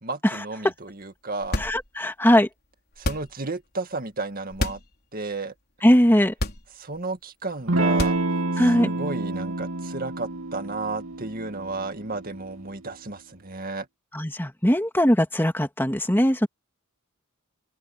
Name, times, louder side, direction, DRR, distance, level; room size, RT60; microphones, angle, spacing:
voice 1, 0.0-1.6 3.0-4.8 5.1-5.5 6.7-8.2 8.5-13.9, right 3 dB, 40° right, 2.1 m, -33 dB
sound 1, 1.4-2.1 2.9-3.5 4.5-4.9 5.3-5.4 6.3-7.0 7.9-8.5, left 1 dB, 45° left, 4.1 m, -30 dB
voice 2, 1.6-2.5 5.8-6.3 8.6-8.9 14.1-16.5, equal, 10° left, 2.4 m, -20 dB
Electric guitar / Strum, 7.7-12.8, right 2 dB, 70° right, 2.9 m, -28 dB
open air
head